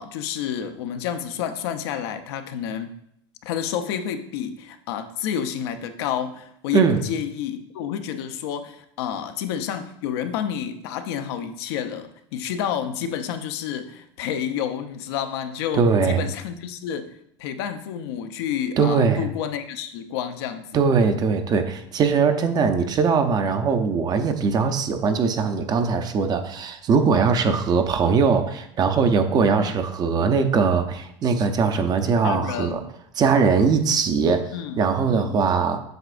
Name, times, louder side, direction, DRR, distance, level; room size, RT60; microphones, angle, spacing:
voice 1, 0.0-2.9 3.4-20.7 29.5-29.8 32.2-32.9 34.5-34.8 35.1-35.4, left 9 dB, 70° left, 7 dB, 0.7 m, -30 dB
voice 2, 6.7-7.0 15.7-16.2 18.8-19.3 20.7-32.8 33.2-34.4 34.8-35.8, right 5 dB, 30° right, 8 dB, 0.6 m, -21 dB
7.8 x 6.0 x 2.5 m, 0.73 s
supercardioid pair, 130°, 14 cm